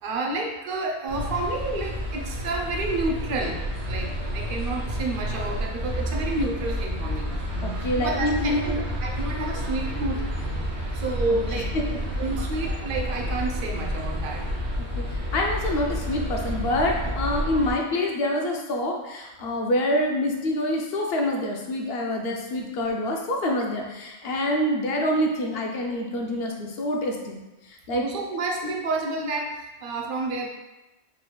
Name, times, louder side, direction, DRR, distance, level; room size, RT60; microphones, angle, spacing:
voice 1, 0.0-3.6 3.9-7.3 7.8-10.3 10.9-11.7 12.2-14.5 27.9-30.5, right 2 dB, 60° right, 2 dB, 0.6 m, -30 dB
sound 1, 1.1-17.7, equal, 90° right, 1.1 m, -30 dB
voice 2, 7.6-8.8 11.3-11.4 11.9-12.0 15.0-15.1 15.3-27.4 27.9-28.0, left 1 dB, 70° left, 1 dB, 0.8 m, -26 dB
4.0 x 2.3 x 3.0 m, 1.1 s
omnidirectional pair, 1.1 m